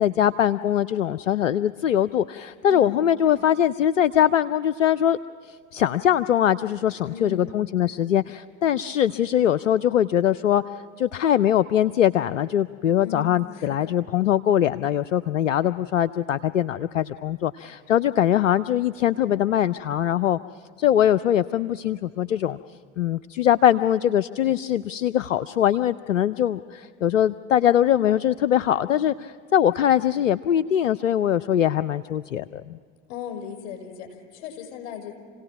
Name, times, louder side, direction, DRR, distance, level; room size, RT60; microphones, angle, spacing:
voice 1, 0.0-5.2 5.4-10.6 11.0-20.4 20.8-22.6 23.0-32.7, left 10 dB, 85° left, 14 dB, 0.5 m, -22 dB
voice 2, 2.7-3.0 7.0-7.6 13.0-13.9 33.1-35.2, left 8 dB, 60° left, 3 dB, 6.1 m, -37 dB
28.5 x 17.5 x 6.0 m, 2.2 s
hypercardioid pair, 80°, 37 cm